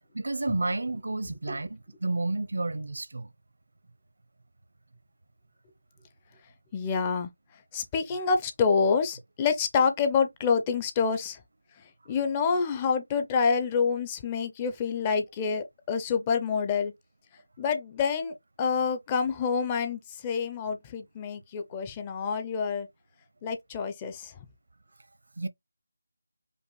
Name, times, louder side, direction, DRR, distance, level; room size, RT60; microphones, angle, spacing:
voice 1, 0.2-3.3 25.4-25.5, right 2 dB, 65° right, 0.6 m, -30 dB
voice 2, 6.7-7.3 7.7-11.4 12.1-16.9 17.6-22.9 23.4-24.3, left 5 dB, 15° left, 0.4 m, -27 dB
5.2 x 2.2 x 3.0 m
figure-of-eight pair, 175°, 0 cm